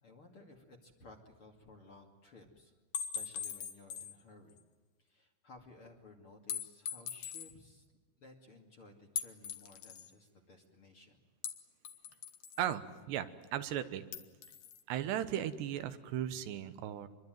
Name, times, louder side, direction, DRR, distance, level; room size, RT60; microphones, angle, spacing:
voice 1, 0.0-2.7 3.1-4.6 5.0-7.8 8.2-11.2, left 2 dB, 35° left, 3 dB, 2.7 m, -57 dB
sound 1, 2.9-4.2 4.6-4.7 6.5-7.5 9.2-10.1 11.4-12.7 14.1-14.8, left 7 dB, 60° left, 1.7 m, -41 dB
voice 2, 12.6-14.0 14.9-17.1, right 11 dB, 80° right, 11 dB, 3.4 m, -36 dB
26.0 x 23.0 x 9.2 m, 1.3 s
omnidirectional pair, 4.9 m